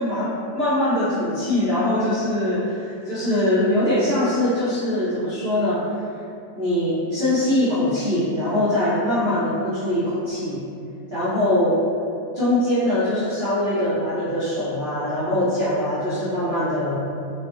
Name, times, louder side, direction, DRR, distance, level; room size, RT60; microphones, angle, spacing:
voice 1, 0.0-5.9 6.5-10.6 11.1-11.8 12.3-17.0, left 1 dB, 45° right, -12 dB, 0.8 m, -22 dB
4.6 x 2.9 x 2.9 m, 2.4 s
omnidirectional pair, 1.9 m